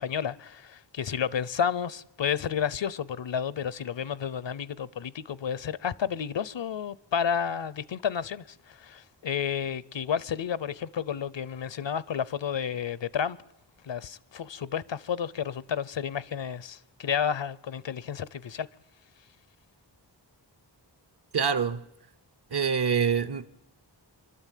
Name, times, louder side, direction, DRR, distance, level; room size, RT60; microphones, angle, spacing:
voice 1, 0.0-13.4 13.8-18.7, left 8 dB, 85° left, 0.7 m, -31 dB
voice 2, 21.3-21.8 22.5-23.5, right 6 dB, 65° right, 1.0 m, -25 dB
26.0 x 12.5 x 9.2 m
wide cardioid pair, 85°, 43 cm